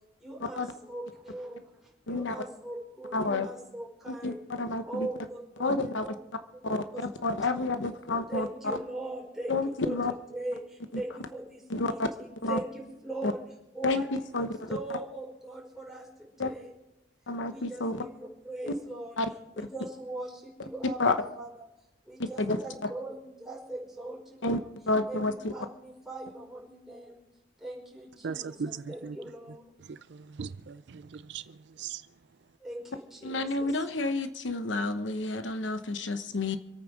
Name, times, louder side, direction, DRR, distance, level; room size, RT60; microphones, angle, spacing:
voice 1, 0.2-4.4 4.8-6.2 6.5-7.3 7.6-7.8 8.3-13.4 13.7-16.7 17.5-19.2 19.5-21.7 22.0-24.7 25.1-27.2 27.6-28.6 28.9-29.6 32.6-33.8, right 2 dB, ahead, 5.0 m, -41 dB
voice 2, 3.1-3.5 4.1-4.3 4.6-5.1 5.6-6.1 6.6-8.5 9.5-10.1 11.7-12.1 12.4-12.6 13.2-13.3 13.8-14.0 14.3-14.7 16.4-16.5 17.3-18.0 18.7-18.8 19.2-19.3 19.6-19.7 21.0-21.1 22.2-22.9 24.4-24.6 24.9-25.5 33.2-36.6, left 2 dB, 80° left, 1.0 m, -29 dB
voice 3, 28.2-29.2 29.5-32.5, right 6 dB, 65° right, 0.5 m, -40 dB
26.5 x 9.1 x 4.8 m
head